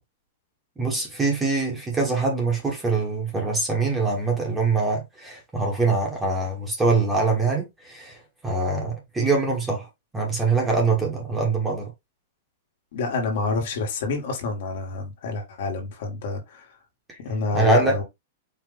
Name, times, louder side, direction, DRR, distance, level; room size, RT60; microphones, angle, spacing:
voice 1, 0.8-8.2 8.4-9.9 10.1-11.9 17.1-17.2 17.5-18.0, right 3 dB, 10° right, 1.2 m, -23 dB
voice 2, 12.9-16.6 17.2-18.0, left 3 dB, 60° left, 1.6 m, -28 dB
4.8 x 2.4 x 3.9 m
supercardioid pair, 165°, 0 cm